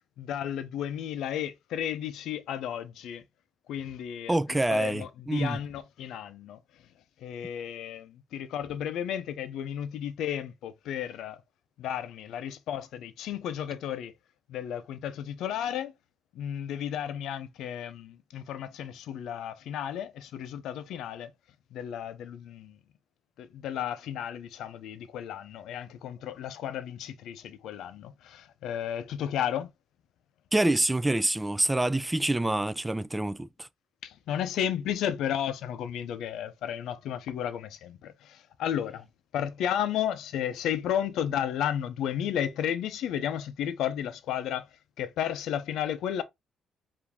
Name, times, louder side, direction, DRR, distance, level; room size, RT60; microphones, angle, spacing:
voice 1, 0.2-3.2 3.7-6.6 7.2-11.4 11.8-14.1 14.5-15.9 16.3-21.3 21.7-22.8 23.4-29.7 34.0-39.1 39.3-44.7 45.0-46.2, left 10 dB, 80° left, 0.6 m, -33 dB
voice 2, 4.3-5.6 30.5-33.7, right 1 dB, 10° right, 0.3 m, -26 dB
4.8 x 2.7 x 3.4 m
cardioid pair, 90°, 0 cm